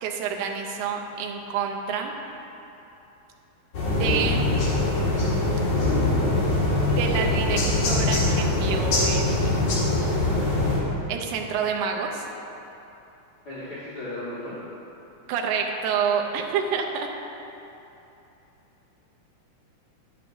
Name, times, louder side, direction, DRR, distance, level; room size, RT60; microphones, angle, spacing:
voice 1, 0.0-2.1 3.9-4.5 6.9-7.6 7.9-9.8 11.1-12.3 15.3-17.1, right 6 dB, 80° right, 1 dB, 2.0 m, -28 dB
sound 1, 3.7-10.8, left 2 dB, 60° left, 2.5 m, -23 dB
voice 2, 13.4-14.6, left 1 dB, 40° left, -12 dB, 1.5 m, -35 dB
10.0 x 7.6 x 2.6 m, 3.0 s
omnidirectional pair, 3.6 m